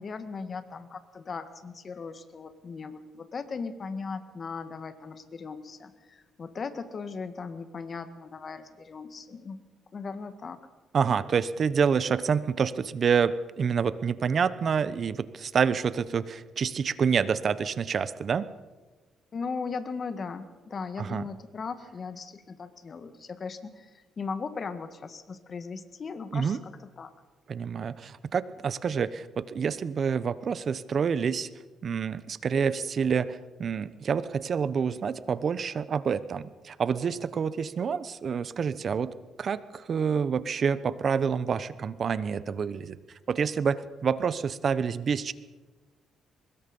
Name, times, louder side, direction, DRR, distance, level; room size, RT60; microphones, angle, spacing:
voice 1, 0.0-9.6 9.9-10.6 19.3-27.1, left 5 dB, 45° left, 10 dB, 1.8 m, -38 dB
voice 2, 10.9-18.5 21.0-21.2 26.3-26.6 27.5-31.5 31.8-43.0 43.3-45.3, right 6 dB, 50° right, 16 dB, 0.9 m, -28 dB
23.5 x 20.5 x 5.5 m, 1.2 s
cardioid pair, 90°, 0 cm